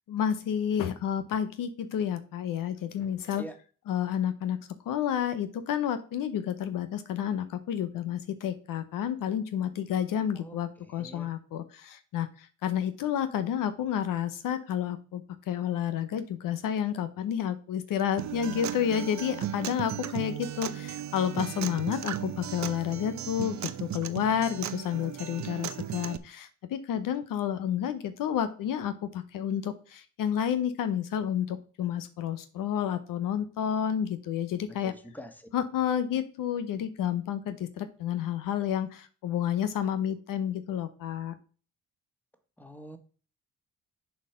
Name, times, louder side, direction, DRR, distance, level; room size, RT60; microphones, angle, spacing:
voice 1, 0.1-3.4 3.9-34.9 35.5-41.3, left 9 dB, 75° left, 11 dB, 0.8 m, -30 dB
voice 2, 10.3-11.3 34.8-35.5 42.6-43.0, right 1 dB, 5° left, 7 dB, 1.5 m, -45 dB
Acoustic guitar, 18.2-26.2, right 11 dB, 55° right, 0.7 m, -36 dB
6.9 x 4.4 x 5.6 m, 0.39 s
supercardioid pair, 60°, 33 cm